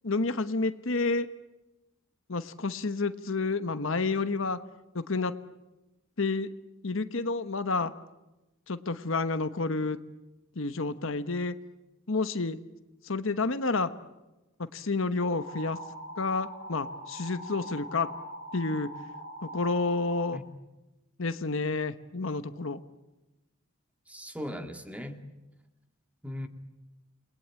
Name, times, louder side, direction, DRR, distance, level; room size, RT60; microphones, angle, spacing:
voice 1, 0.0-1.3 2.3-4.6 4.9-5.3 6.2-6.5 6.8-7.9 8.7-10.0 10.6-11.5 12.1-12.6 13.0-13.9 14.7-15.8 16.2-18.1 18.5-18.9 19.4-20.4 21.2-22.8, left 3 dB, 65° left, 11 dB, 1.1 m, -29 dB
sound 1, 15.2-20.2, right 1 dB, 75° right, 4.7 m, -42 dB
voice 2, 24.1-25.2 26.2-26.5, equal, 5° right, 6 dB, 2.0 m, -38 dB
29.0 x 21.0 x 8.8 m, 1.0 s
head